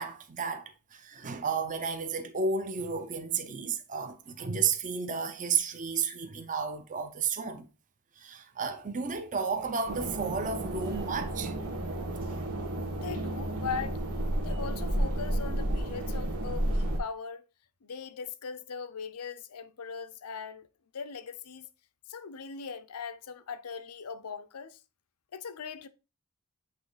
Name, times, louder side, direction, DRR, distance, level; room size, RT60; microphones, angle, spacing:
voice 1, 0.0-7.7 8.2-11.5, right 5 dB, 35° right, 0.6 m, -32 dB
sound 1, 9.9-17.0, right 1 dB, 90° right, 1.5 m, -32 dB
voice 2, 12.8-14.0 14.4-17.4 17.8-20.7 20.9-21.7 22.1-24.8 25.3-25.9, left 6 dB, 90° left, 0.6 m, -40 dB
8.2 x 3.1 x 3.9 m
head